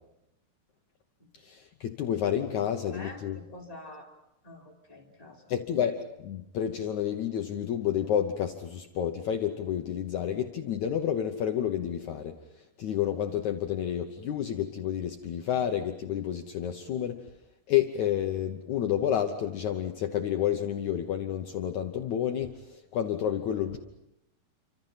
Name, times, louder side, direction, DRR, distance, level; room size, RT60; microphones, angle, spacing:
voice 1, 1.4-3.4 5.5-12.3 12.8-17.2 17.7-23.8, left 10 dB, 70° left, 5 dB, 1.8 m, -30 dB
voice 2, 2.6-4.1 4.4-5.4, left 2 dB, 10° left, -1 dB, 3.4 m, -47 dB
29.0 x 25.5 x 5.8 m, 0.85 s
omnidirectional pair, 4.6 m